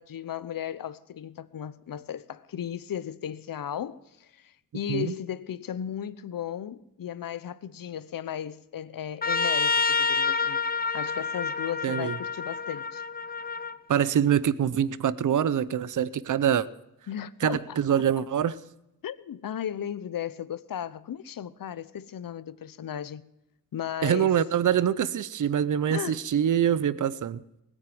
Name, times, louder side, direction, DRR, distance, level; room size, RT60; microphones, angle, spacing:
voice 1, 0.0-10.6 10.9-13.0 17.1-18.0 19.0-23.2 23.7-24.4 25.9-26.2, left 10 dB, 70° left, 0.8 m, -35 dB
Trumpet, 9.2-13.8, left 4 dB, 25° left, 0.8 m, -28 dB
voice 2, 11.8-12.1 13.9-16.7 17.4-18.6 24.0-27.4, right 9 dB, 60° right, 0.7 m, -25 dB
20.0 x 9.4 x 7.7 m
wide cardioid pair, 105°, 36 cm